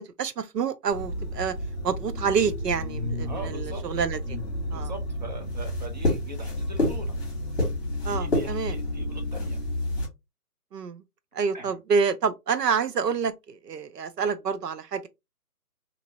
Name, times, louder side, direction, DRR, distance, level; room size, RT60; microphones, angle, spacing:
voice 1, 0.0-1.5 1.8-4.4 4.7-4.9 8.0-8.8 10.7-11.0 11.3-15.1, right 6 dB, 85° right, 0.7 m, -28 dB
sound 1, 0.9-10.1, left 1 dB, 15° left, 1.4 m, -30 dB
voice 2, 3.2-3.8 4.6-7.2 8.0-9.6 11.5-11.8, right 2 dB, 30° right, 0.6 m, -41 dB
2.9 x 2.7 x 2.8 m
hypercardioid pair, 160°, 47 cm